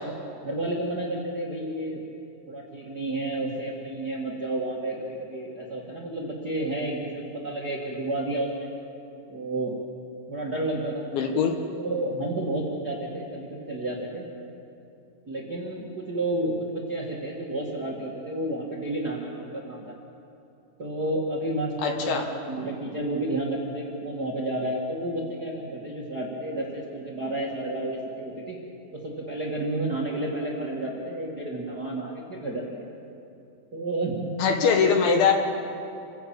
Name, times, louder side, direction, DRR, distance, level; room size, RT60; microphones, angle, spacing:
voice 1, 0.4-2.0 2.5-8.7 9.3-9.8 10.3-11.1 11.8-14.3 15.2-19.9 20.8-28.6 28.9-32.8 33.7-34.3 34.6-35.1, right 1 dB, 70° right, -3 dB, 0.9 m, -31 dB
voice 2, 11.1-11.6 21.8-22.2 34.4-35.3, left 6 dB, 70° left, 3 dB, 3.5 m, -22 dB
29.5 x 16.0 x 8.7 m, 2.7 s
omnidirectional pair, 6.0 m